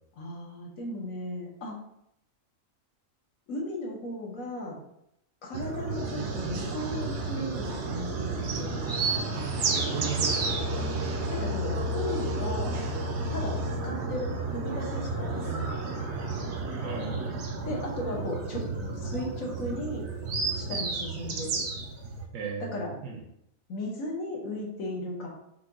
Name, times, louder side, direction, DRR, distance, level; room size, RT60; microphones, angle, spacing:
voice 1, 0.2-1.8 3.5-4.8 5.4-8.9 11.3-12.8 13.3-13.6 13.8-15.8 17.6-18.7 18.9-20.1 20.5-21.6 22.6-22.9 23.7-25.3, left 1 dB, 75° left, -1 dB, 1.4 m, -36 dB
sound 1, 5.5-22.2, right 3 dB, 60° right, 0.8 m, -31 dB
voice 2, 9.7-10.6 16.8-17.3 22.3-23.2, right 4 dB, 75° right, 2 dB, 1.3 m, -36 dB
5.7 x 2.3 x 3.8 m, 0.78 s
omnidirectional pair, 1.4 m